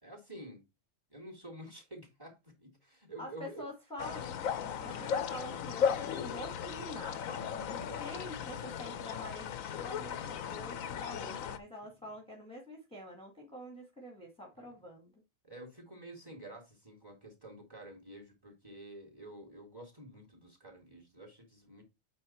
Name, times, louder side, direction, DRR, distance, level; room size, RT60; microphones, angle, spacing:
voice 1, 0.0-0.6 1.1-3.7 7.7-8.7 10.9-11.2 15.4-21.8, right 1 dB, 15° right, 3.0 m, -50 dB
voice 2, 3.2-4.3 4.8-15.1, left 1 dB, 5° left, 1.8 m, -46 dB
sound 1, 4.0-11.6, left 8 dB, 80° left, 1.2 m, -36 dB
8.6 x 4.2 x 4.4 m
omnidirectional pair, 1.4 m